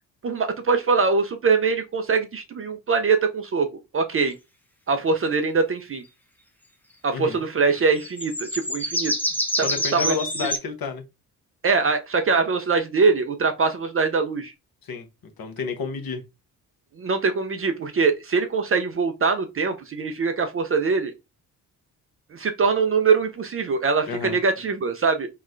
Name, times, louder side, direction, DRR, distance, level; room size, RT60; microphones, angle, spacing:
voice 1, 0.2-3.7 3.9-4.3 4.9-6.0 7.0-9.1 9.6-9.7 9.9-10.1 11.6-14.5 17.0-21.1 22.3-25.3, right 4 dB, 30° right, 0.5 m, -23 dB
voice 2, 7.1-7.4 9.6-11.0 14.8-15.1 15.4-16.2 24.1-24.4, left 5 dB, 50° left, 1.0 m, -30 dB
sound 1, 8.0-10.6, equal, 5° left, 0.7 m, -27 dB
3.7 x 2.1 x 2.4 m
hypercardioid pair, 40°, 46 cm